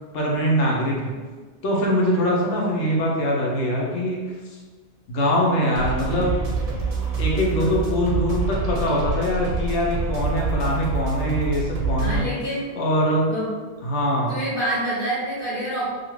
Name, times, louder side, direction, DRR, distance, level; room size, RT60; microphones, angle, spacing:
voice 1, 0.1-1.1 1.6-4.3 5.1-6.4 7.2-12.2 12.7-13.4 13.8-14.4, equal, 90° left, -3 dB, 1.0 m, -23 dB
sound 1, 5.7-12.2, right 3 dB, 45° right, 0.5 m, -26 dB
voice 2, 12.0-12.6 13.3-13.5 14.3-15.8, right 1 dB, 55° left, -8 dB, 0.9 m, -27 dB
2.7 x 2.4 x 3.1 m, 1.4 s
omnidirectional pair, 1.2 m